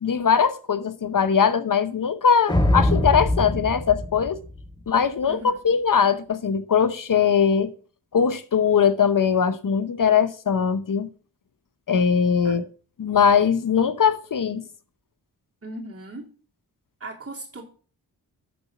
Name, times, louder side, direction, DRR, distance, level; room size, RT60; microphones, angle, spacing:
voice 1, 0.0-4.4 4.9-7.7 8.1-11.1 11.9-12.6 13.0-14.7, left 7 dB, 55° left, 0.9 m, -21 dB
sound 1, 2.5-5.0, left 1 dB, 10° left, 1.4 m, -23 dB
voice 2, 5.3-5.6 12.4-12.6 15.6-16.3 17.0-17.6, right 2 dB, 40° right, 2.8 m, -37 dB
11.5 x 4.0 x 6.0 m
cardioid pair, 75°, 38 cm